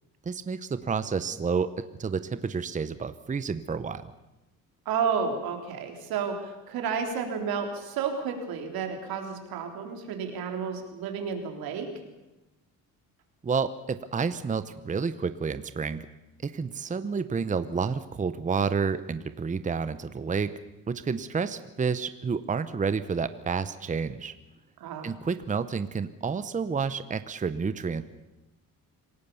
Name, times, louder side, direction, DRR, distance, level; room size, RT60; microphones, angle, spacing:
voice 1, 0.2-4.1 13.4-16.1 16.4-20.5 20.9-24.3 25.0-28.0, right 5 dB, 20° right, 12 dB, 0.9 m, -30 dB
voice 2, 4.9-11.9 24.8-25.1, right 6 dB, 85° right, 4 dB, 3.8 m, -31 dB
26.5 x 17.5 x 7.1 m, 1.0 s
cardioid pair, 120°, 35 cm